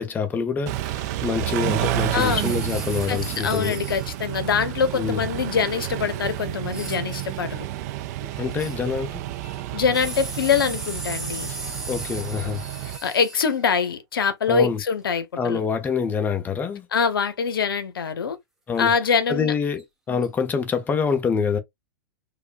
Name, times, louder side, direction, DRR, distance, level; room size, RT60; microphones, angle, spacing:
voice 1, 0.0-3.8 4.9-5.2 8.4-9.2 11.9-12.6 14.5-14.8 15.4-16.9 18.7-18.9 19.3-21.6, left 6 dB, 15° left, 0.8 m, -26 dB
Car / Idling / Accelerating revving vroom, 0.7-13.0, right 14 dB, 50° right, 0.5 m, -30 dB
voice 2, 2.1-2.4 3.1-7.7 9.7-11.5 13.0-15.6 16.9-18.4 18.8-19.5 20.1-20.3, left 6 dB, 85° left, 0.8 m, -24 dB
sound 1, 2.2-4.2 5.8-5.9 6.7-7.5 8.3-9.0 9.4-13.7 19.8-19.9 20.2-20.3, right 2 dB, 5° right, 1.1 m, -37 dB
5.0 x 2.2 x 2.5 m
hypercardioid pair, 125°, 12 cm